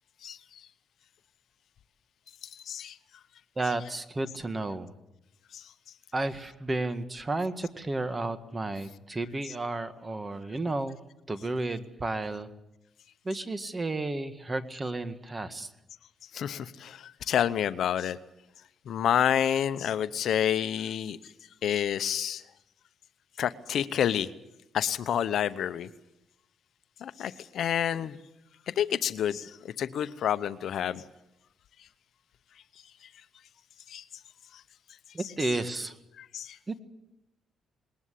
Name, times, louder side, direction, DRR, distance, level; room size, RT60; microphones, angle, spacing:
voice 1, 2.4-3.0 5.5-5.6 16.3-18.2 18.9-21.2 21.6-22.4 23.4-24.3 24.7-25.9 27.0-28.2 28.8-31.0 33.9-34.0 36.2-36.6, left 9 dB, 65° left, 13 dB, 0.8 m, -29 dB
voice 2, 3.6-4.9 6.1-11.0 11.3-12.5 13.2-15.7 35.1-35.9 36.7-36.8, right 2 dB, 25° right, 10 dB, 1.7 m, -32 dB
20.5 x 19.0 x 8.4 m, 0.89 s
cardioid pair, 90°, 0 cm